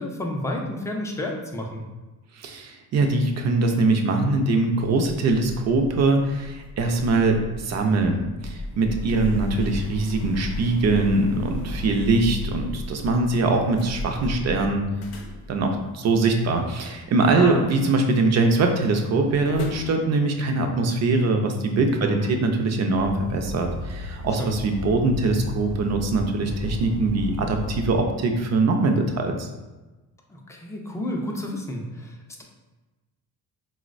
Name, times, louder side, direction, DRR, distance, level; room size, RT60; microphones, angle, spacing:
voice 1, 0.0-1.8 17.3-17.6 22.0-22.3 24.4-24.5 30.3-32.4, left 1 dB, 10° left, 0 dB, 0.4 m, -30 dB
voice 2, 2.4-14.9 15.5-29.5, right 3 dB, 45° right, 4 dB, 0.5 m, -22 dB
sound 1, 5.2-18.2 18.4-18.8 19.2-20.0, left 1 dB, 90° left, 0.6 m, -35 dB
sound 2, 22.9-28.0, left 1 dB, 85° right, 0.7 m, -34 dB
3.9 x 2.1 x 2.4 m, 1.1 s
cardioid pair, 105°, 36 cm